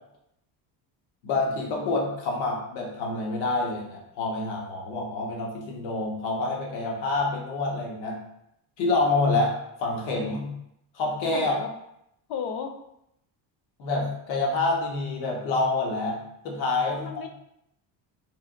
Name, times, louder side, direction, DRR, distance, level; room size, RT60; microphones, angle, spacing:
voice 1, 1.2-8.2 8.8-9.5 9.8-10.5 10.9-11.5 13.8-16.2 16.4-17.0, left 3 dB, 85° left, -1 dB, 1.0 m, -27 dB
voice 2, 11.3-11.7 12.3-12.7 16.9-17.3, left 6 dB, 55° left, 6 dB, 0.5 m, -33 dB
3.4 x 2.8 x 2.5 m, 0.79 s
cardioid pair, 150°, 46 cm